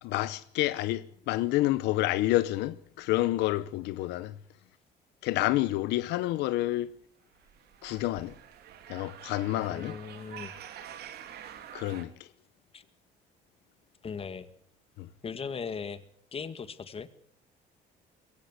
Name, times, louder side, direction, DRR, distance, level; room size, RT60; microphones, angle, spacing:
voice 1, 0.0-4.4 5.2-7.0 7.8-8.3 8.9-10.0 11.7-12.3 15.0-15.1, left 16 dB, 90° left, 0.9 m, -29 dB
sound 1, 7.4-12.0, right 10 dB, 70° right, 2.7 m, -47 dB
voice 2, 9.7-10.5 12.7-12.8 14.0-14.5 15.2-16.0 16.3-17.1, left 6 dB, 35° left, 2.0 m, -38 dB
23.0 x 17.0 x 8.3 m
cardioid pair, 110°, 17 cm